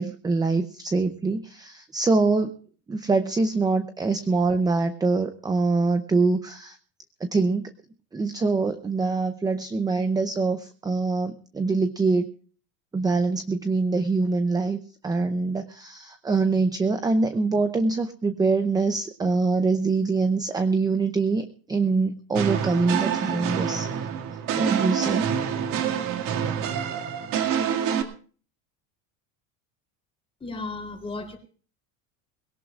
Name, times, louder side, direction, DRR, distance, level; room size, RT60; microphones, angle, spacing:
voice 1, 0.0-2.5 2.9-6.8 7.2-7.7 8.1-12.3 12.9-23.9 24.6-25.3, right 3 dB, 10° right, 9 dB, 0.6 m, -24 dB
sound 1, 22.3-28.0, right 8 dB, 50° right, 2.2 m, -26 dB
voice 2, 30.4-31.4, left 3 dB, 15° left, 4 dB, 3.4 m, -34 dB
21.5 x 17.5 x 2.4 m, 0.43 s
cardioid pair, 155°, 41 cm